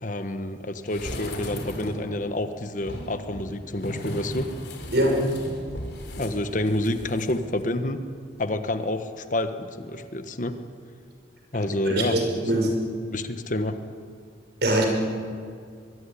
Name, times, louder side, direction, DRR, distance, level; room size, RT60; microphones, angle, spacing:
voice 1, 0.0-4.5 6.2-8.0 8.4-10.5 11.5-12.2 12.5-12.7 13.1-13.8, left 1 dB, 45° left, 9 dB, 1.3 m, -28 dB
sound 1, 0.9-2.1 2.8-7.3 7.6-7.7, equal, 65° left, 4.2 m, -36 dB
voice 2, 4.9-5.3 11.8-12.7 14.6-14.9, right 1 dB, 60° right, 2 dB, 5.8 m, -22 dB
23.0 x 22.0 x 9.9 m, 2.2 s
head